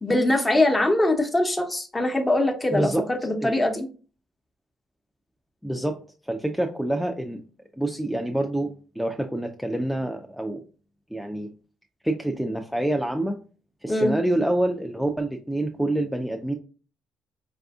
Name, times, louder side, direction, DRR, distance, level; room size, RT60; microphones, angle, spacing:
voice 1, 0.0-3.9 13.9-14.1, left 1 dB, 20° left, 4 dB, 0.9 m, -22 dB
voice 2, 2.7-3.0 3.4-3.5 5.6-6.0 6.3-7.4 7.8-10.6 11.1-11.5 12.0-13.4 13.8-16.5, right 1 dB, ahead, 4 dB, 0.4 m, -27 dB
4.6 x 2.4 x 2.4 m, 0.37 s
hypercardioid pair, 50°, 0 cm